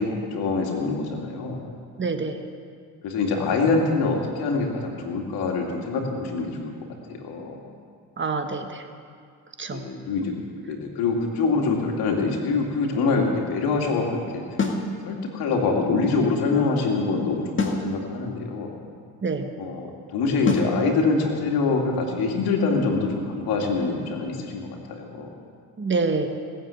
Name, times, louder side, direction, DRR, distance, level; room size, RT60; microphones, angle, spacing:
voice 1, 0.0-1.7 3.0-6.7 7.1-7.6 9.7-10.3 10.6-14.4 15.0-18.7 19.6-25.3, left 4 dB, 80° left, 1 dB, 2.5 m, -25 dB
voice 2, 2.0-2.4 8.2-8.8 9.6-9.8 19.2-19.5 25.8-26.3, right 4 dB, 30° right, 6 dB, 1.4 m, -26 dB
sound 1, 14.6-14.9 17.6-17.9 20.5-20.8, left 3 dB, 30° left, 2.0 m, -24 dB
18.5 x 7.5 x 8.5 m, 2.2 s
cardioid pair, 85°, 37 cm